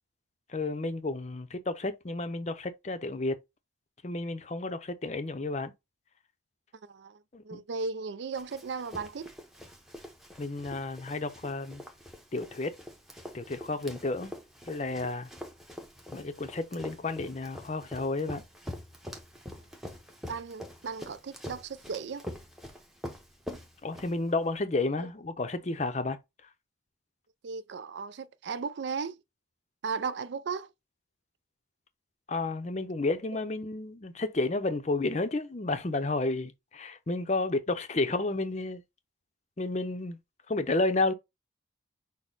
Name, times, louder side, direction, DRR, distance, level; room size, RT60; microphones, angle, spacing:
voice 1, 0.5-3.4 4.0-5.7 7.3-7.6 10.4-11.8 12.3-12.7 13.3-14.3 14.7-15.3 16.1-18.4 23.8-26.2 32.3-38.8 39.6-40.2 40.5-41.1, left 2 dB, 35° left, 0.6 m, -31 dB
voice 2, 6.8-9.3 20.3-22.2 25.0-25.1 27.4-29.2 29.8-30.7, right 5 dB, 60° right, 0.4 m, -36 dB
Run, 8.4-24.5, left 1 dB, ahead, 0.7 m, -45 dB
6.2 x 2.1 x 3.9 m
head